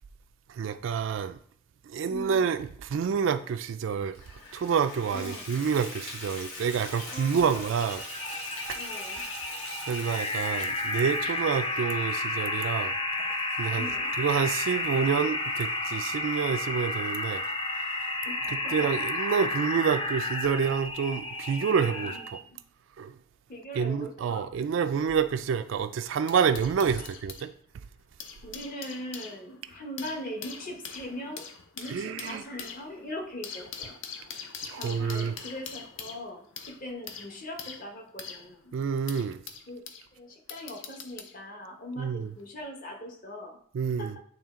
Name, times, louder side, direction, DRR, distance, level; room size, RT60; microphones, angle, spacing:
voice 1, 0.6-1.4 1.9-4.1 4.5-8.0 8.7-8.8 9.9-12.9 13.6-13.9 14.2-17.4 18.7-22.1 23.0-23.1 23.8-27.5 31.9-32.4 34.7-35.3 38.7-39.4 42.0-42.3 43.7-44.1, right 6 dB, 65° right, 0.3 m, -28 dB
voice 2, 2.0-2.5 5.1-5.6 7.1-7.7 8.7-9.2 13.7-14.2 18.2-18.9 19.3-19.4 22.0-22.6 23.5-24.5 27.0-27.1 28.4-31.5 31.8-33.9 34.7-38.8 39.7-39.8 40.1-43.6 44.0-44.2, left 1 dB, 40° left, 1.1 m, -41 dB
Water tap faucet / Bathtub (filling or washing), 4.1-18.5 19.1-19.2 19.7-19.8 20.1-20.2, left 2 dB, 85° left, 1.7 m, -44 dB
sound 1, 7.8-22.4, left 2 dB, 25° left, 0.5 m, -32 dB
sound 2, 25.4-27.5 28.0-40.1 40.5-41.4 42.3-42.4, left 6 dB, 65° left, 0.7 m, -43 dB
8.8 x 3.1 x 3.7 m
head